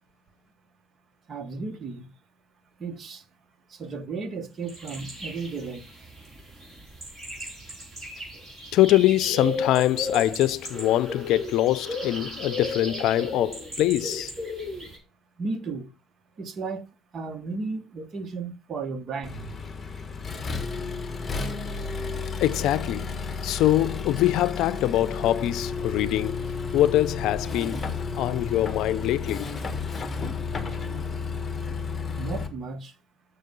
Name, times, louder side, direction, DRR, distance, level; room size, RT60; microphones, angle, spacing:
voice 1, 1.3-2.1 2.8-3.2 3.7-5.9 15.4-15.9 16.4-16.9 17.1-19.6 32.2-33.0, right 4 dB, 40° right, 1.3 m, -34 dB
sound 1, 4.7-15.0, left 2 dB, 20° right, 4.9 m, -35 dB
voice 2, 8.7-14.3 22.4-23.1 23.4-26.5 26.7-27.9 28.2-29.5, left 14 dB, 65° left, 0.5 m, -23 dB
Accelerating revving vroom, 19.2-32.5, left 4 dB, 25° left, 1.4 m, -32 dB
6.7 x 6.6 x 5.3 m
cardioid pair, 120°, 0 cm